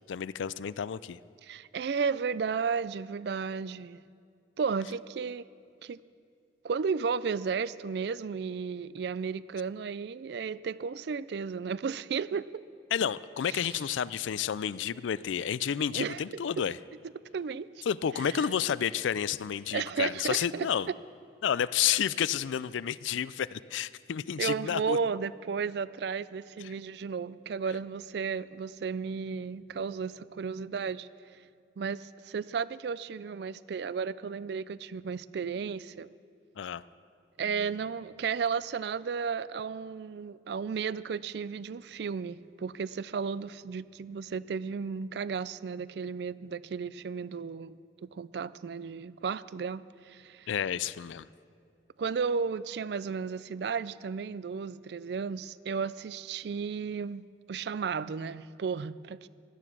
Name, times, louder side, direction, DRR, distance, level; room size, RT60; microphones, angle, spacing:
voice 1, 0.1-1.2 12.9-16.8 17.9-20.9 21.4-25.0 26.6-26.7 36.6-36.8 50.5-51.3, left 8 dB, 85° left, 18 dB, 0.4 m, -30 dB
voice 2, 1.4-4.0 4.6-5.4 5.8-6.0 6.6-12.6 13.5-13.8 15.9-16.4 17.3-17.8 18.2-18.5 19.7-20.7 24.4-31.1 31.8-36.1 37.4-50.5 52.0-59.3, right 5 dB, 60° right, 18 dB, 0.3 m, -34 dB
16.5 x 12.0 x 6.1 m, 2.3 s
head